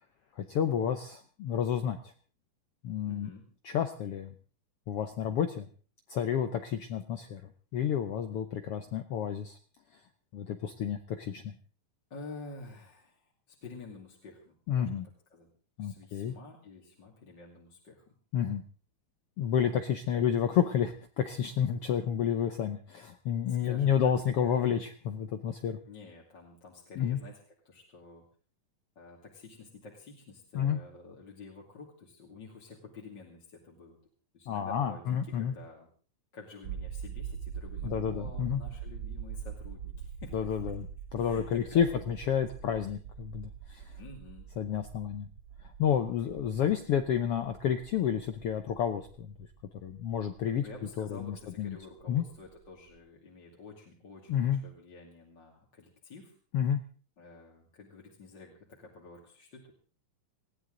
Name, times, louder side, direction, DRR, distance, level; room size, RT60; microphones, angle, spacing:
voice 1, 0.4-2.1 2.8-3.3 3.6-4.3 4.9-5.7 6.1-7.4 7.7-9.6 10.3-11.6 14.7-15.0 15.8-16.3 18.3-18.6 19.4-25.8 27.0-27.2 30.5-30.8 34.5-35.5 37.8-38.6 40.3-40.9 41.1-43.9 44.6-45.3 45.8-49.3 49.7-50.7 51.0-51.8 52.1-52.2 54.3-54.6 56.5-56.8, left 8 dB, 70° left, 8 dB, 1.4 m, -30 dB
voice 2, 3.1-3.4 12.1-15.0 15.3-15.5 15.8-18.1 19.8-20.3 23.4-24.9 25.9-28.2 29.0-34.0 34.3-35.9 36.3-40.7 41.2-42.0 42.6-42.8 44.0-44.5 46.3-46.5 50.6-56.3 57.2-59.7, left 3 dB, 35° left, -2 dB, 2.9 m, -50 dB
sound 1, 36.6-52.7 53.0-53.1, right 8 dB, 85° right, 1.1 m, -43 dB
20.0 x 16.0 x 3.8 m, 0.38 s
omnidirectional pair, 3.7 m